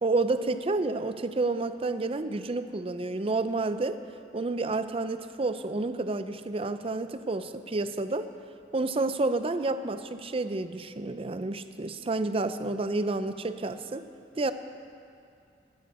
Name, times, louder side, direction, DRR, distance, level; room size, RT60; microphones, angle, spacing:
voice 1, 0.0-4.0 4.3-8.3 8.7-14.1 14.4-14.5, right 3 dB, 30° right, 11 dB, 0.5 m, -30 dB
18.0 x 13.5 x 4.3 m, 2.4 s
head